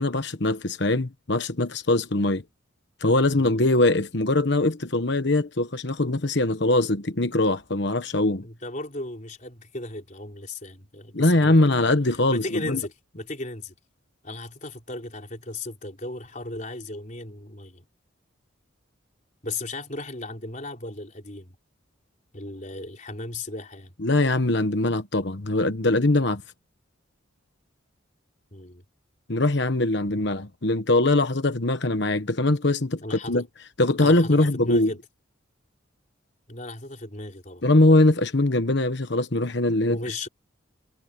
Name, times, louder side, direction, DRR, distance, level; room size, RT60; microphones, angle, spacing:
voice 1, 0.0-2.4 3.0-8.4 11.1-12.8 24.0-26.4 29.3-33.4 33.8-34.9 37.6-40.0, left 2 dB, 55° left, 1.3 m, -22 dB
voice 2, 8.4-11.9 12.3-13.8 14.2-17.8 19.4-21.5 22.3-23.9 28.5-28.8 33.0-33.4 34.0-35.0 36.5-37.6 39.8-40.3, left 2 dB, 40° left, 4.4 m, -36 dB
head